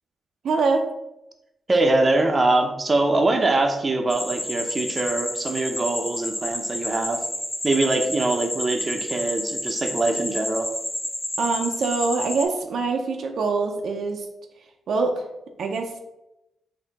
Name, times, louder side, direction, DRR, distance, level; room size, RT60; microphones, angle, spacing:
voice 1, 0.4-0.9 11.4-14.3 14.9-15.2 15.6-15.9, right 4 dB, 75° right, 3 dB, 0.6 m, -24 dB
voice 2, 1.7-7.2 7.6-10.7, right 2 dB, 30° right, 3 dB, 0.7 m, -23 dB
sound 1, 4.1-12.4, left 1 dB, 20° left, 0.6 m, -30 dB
4.3 x 2.8 x 4.0 m, 0.89 s
cardioid pair, 75°, 0 cm